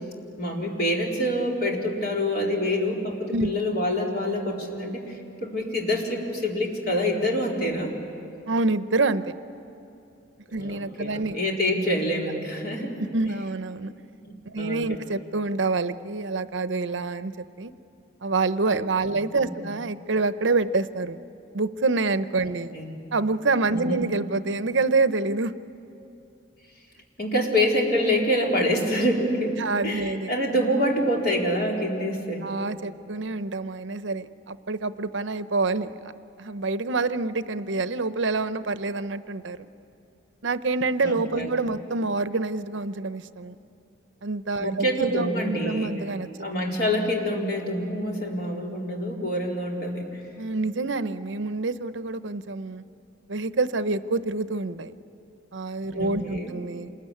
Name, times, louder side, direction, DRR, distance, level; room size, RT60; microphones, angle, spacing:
voice 1, 0.4-7.9 10.5-13.0 14.2-15.0 19.0-19.7 22.4-23.0 23.7-24.0 27.2-32.5 41.0-41.5 44.6-45.9 46.4-50.2 55.9-56.5, equal, 50° left, -1 dB, 4.1 m, -26 dB
voice 2, 8.5-9.4 10.5-11.5 13.1-13.9 14.5-17.7 18.2-21.2 21.5-22.7 23.1-25.5 29.6-30.3 32.4-35.9 36.4-39.7 40.4-43.6 44.2-46.3 50.4-52.8 53.3-54.9 55.5-56.9, right 3 dB, 70° right, 12 dB, 0.7 m, -27 dB
27.5 x 21.5 x 9.9 m, 2.8 s
head